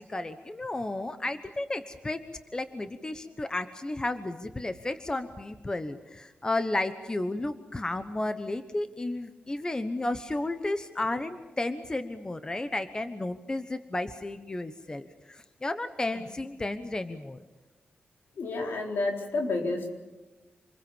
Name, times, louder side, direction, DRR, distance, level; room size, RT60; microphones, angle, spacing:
voice 1, 0.0-2.2 2.5-17.4, left 2 dB, 20° left, 10 dB, 1.1 m, -33 dB
voice 2, 18.4-19.9, left 2 dB, 75° left, 1 dB, 4.3 m, -30 dB
27.5 x 21.5 x 7.3 m, 1.1 s
wide cardioid pair, 100°, 4 cm